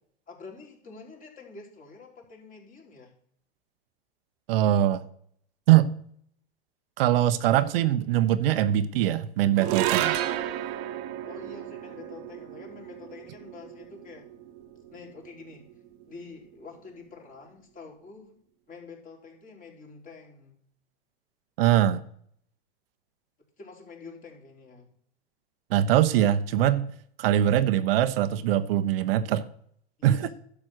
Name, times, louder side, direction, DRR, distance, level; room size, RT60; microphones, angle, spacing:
voice 1, 0.3-3.1 11.2-14.2 14.9-15.6 16.1-18.4 18.7-20.6 23.6-24.9 30.0-30.3, left 4 dB, 25° left, 0 dB, 3.7 m, -47 dB
voice 2, 4.5-5.0 5.7-5.9 7.0-10.2 21.6-22.0 25.7-26.9 27.2-29.4 30.0-30.2, right 12 dB, 65° right, 11 dB, 1.0 m, -22 dB
sound 1, 9.6-16.0, right 12 dB, 45° right, 1.3 m, -32 dB
11.5 x 7.2 x 6.3 m, 0.64 s
hypercardioid pair, 125°, 32 cm